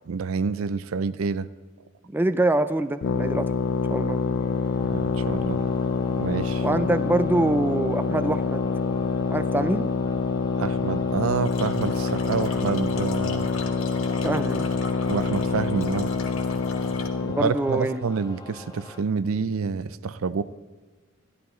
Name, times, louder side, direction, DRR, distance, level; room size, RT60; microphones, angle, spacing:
voice 1, 0.1-1.5 4.9-5.6 6.2-6.7 10.6-13.5 15.1-16.1 17.4-20.4, right 5 dB, 80° right, 15 dB, 0.5 m, -28 dB
voice 2, 2.1-3.5 3.9-4.2 6.6-8.6 9.3-9.9 14.2-14.7 17.2-18.1, right 1 dB, 10° right, 10 dB, 0.3 m, -25 dB
sound 1, 3.0-17.5, left 4 dB, 60° left, 0.4 m, -26 dB
sound 2, 3.1-19.0, left 3 dB, 20° left, 0.9 m, -43 dB
sound 3, 11.4-17.1, left 4 dB, 80° left, 1.3 m, -40 dB
14.0 x 11.0 x 3.1 m, 1.3 s
head